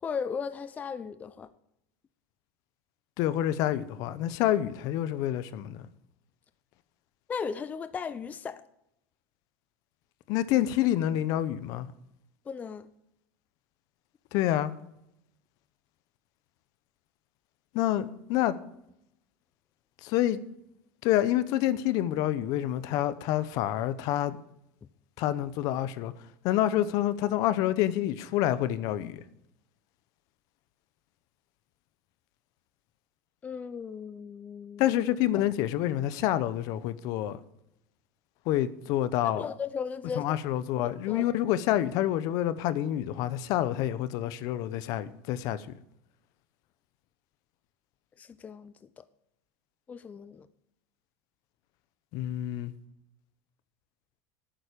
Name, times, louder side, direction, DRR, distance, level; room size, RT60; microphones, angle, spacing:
voice 1, 0.0-1.5 7.3-8.6 12.5-12.9 33.4-34.9 35.3-35.4 39.2-40.2 40.8-41.3 48.2-49.1 49.9-50.5, left 6 dB, 20° left, 0.5 m, -36 dB
voice 2, 3.2-5.9 10.3-11.9 14.3-14.7 17.7-18.6 20.0-20.4 21.0-24.4 25.2-26.1 26.4-29.2 34.8-37.4 38.5-39.4 40.2-45.7 52.1-52.7, left 13 dB, 55° left, 0.8 m, -27 dB
11.5 x 9.0 x 5.2 m
supercardioid pair, 125°, 7 cm